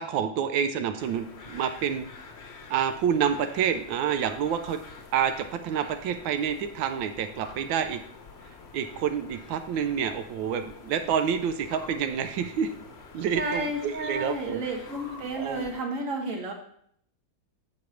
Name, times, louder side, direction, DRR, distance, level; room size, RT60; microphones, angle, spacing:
voice 1, 0.0-2.1 2.7-4.8 5.1-8.0 8.7-12.7 13.1-14.6 15.4-15.6, right 8 dB, 90° right, 8 dB, 1.4 m, -28 dB
sound 1, 1.0-15.8, left 4 dB, 45° left, 1.0 m, -47 dB
voice 2, 13.3-16.5, right 2 dB, 45° right, 2 dB, 1.6 m, -31 dB
7.5 x 4.6 x 6.3 m, 0.66 s
omnidirectional pair, 2.1 m